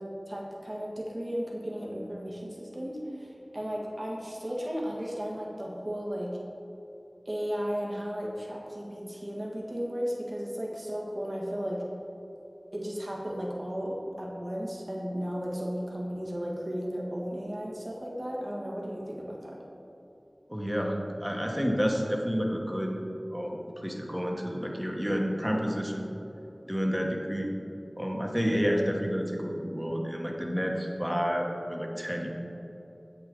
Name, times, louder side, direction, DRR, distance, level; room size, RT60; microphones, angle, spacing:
voice 1, 0.0-6.3 7.2-11.8 12.7-19.6, equal, 45° right, -4 dB, 1.6 m, -35 dB
voice 2, 20.5-23.0 23.3-26.1 26.7-27.5 28.0-32.3, equal, 10° right, 0 dB, 1.2 m, -30 dB
8.2 x 8.1 x 3.7 m, 2.9 s
wide cardioid pair, 50°, 0 cm